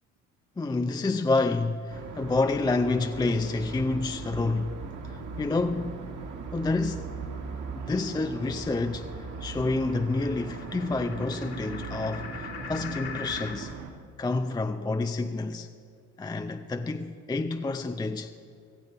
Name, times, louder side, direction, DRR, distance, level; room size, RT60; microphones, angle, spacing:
voice 1, 0.6-4.8 5.0-6.1 6.5-7.1 7.9-9.1 9.4-13.7 14.2-15.7 16.2-18.3, left 3 dB, 10° left, 0.5 m, -28 dB
sound 1, 1.9-13.9, right 4 dB, 45° right, 1.9 m, -39 dB
sound 2, 6.9-13.6, left 6 dB, 60° left, 2.1 m, -44 dB
16.0 x 15.0 x 4.4 m
hypercardioid pair, 60°, 42 cm